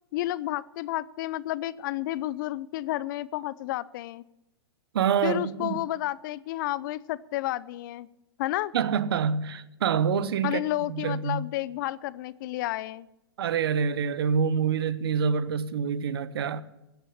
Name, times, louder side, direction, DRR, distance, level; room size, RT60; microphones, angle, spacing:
voice 1, 0.1-4.2 5.2-8.1 8.4-8.7 10.4-13.1, left 15 dB, 50° left, 0.6 m, -31 dB
voice 2, 4.9-5.8 8.7-11.4 13.4-16.6, right 7 dB, 70° right, 1.0 m, -26 dB
16.5 x 7.0 x 8.7 m
hypercardioid pair, 120°, 13 cm